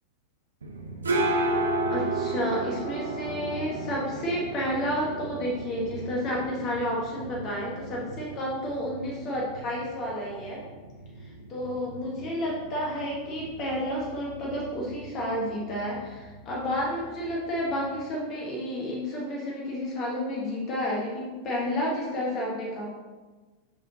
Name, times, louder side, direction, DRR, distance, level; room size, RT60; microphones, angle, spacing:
sound 1, 0.6-18.1, right 2 dB, 70° right, 0.8 m, -34 dB
voice 1, 1.9-10.6 11.2-22.9, equal, 35° left, -2 dB, 1.4 m, -31 dB
6.3 x 5.5 x 2.8 m, 1.3 s
figure-of-eight pair, 90°, 0 cm